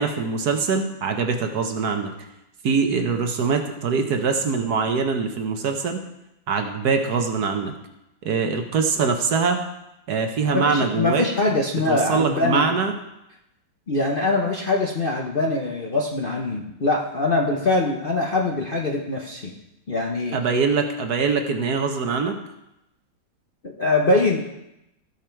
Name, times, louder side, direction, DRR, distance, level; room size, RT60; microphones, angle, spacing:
voice 1, 0.0-2.1 2.6-6.0 6.5-7.7 8.2-9.6 10.1-11.2 11.9-12.9 20.3-22.4, right 5 dB, 60° right, 5 dB, 1.4 m, -23 dB
voice 2, 10.5-12.7 13.9-19.5 19.9-20.4 23.6-24.5, left 2 dB, 40° left, -1 dB, 0.8 m, -23 dB
16.0 x 5.6 x 4.5 m, 0.87 s
omnidirectional pair, 2.1 m